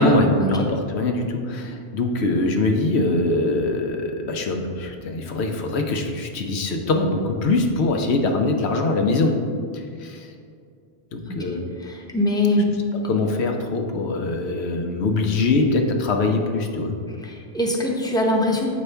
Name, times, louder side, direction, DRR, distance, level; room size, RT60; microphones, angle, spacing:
voice 1, 0.0-9.3 10.0-10.3 11.1-11.6 12.9-16.9, left 2 dB, 80° left, 4 dB, 1.0 m, -23 dB
voice 2, 11.9-12.7 17.2-18.7, left 1 dB, 5° left, 0 dB, 0.6 m, -22 dB
8.3 x 5.3 x 3.3 m, 2.3 s
omnidirectional pair, 1.1 m